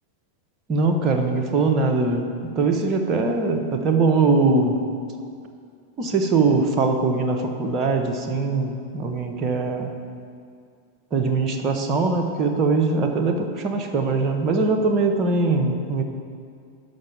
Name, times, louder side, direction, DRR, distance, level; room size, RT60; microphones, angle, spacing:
voice 1, 0.7-4.8 6.0-9.9 11.1-16.0, right 3 dB, 30° right, 3 dB, 0.8 m, -22 dB
6.4 x 5.8 x 7.3 m, 2.2 s
figure-of-eight pair, 90°, 0 cm